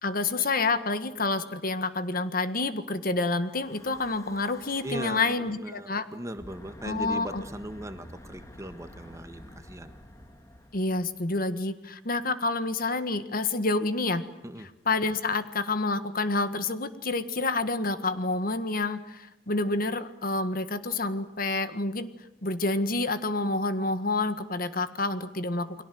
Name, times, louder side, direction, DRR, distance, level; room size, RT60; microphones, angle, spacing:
voice 1, 0.0-6.1 6.8-7.4 10.7-14.3 14.8-22.1 22.4-25.8, left 3 dB, 55° left, 10 dB, 1.7 m, -28 dB
Breathing / Wind, 3.4-5.3 6.2-11.6, equal, 20° left, 2.7 m, -49 dB
voice 2, 4.8-10.0 14.4-14.7, right 1 dB, 15° right, 9 dB, 1.5 m, -39 dB
30.0 x 22.5 x 7.8 m, 0.86 s
head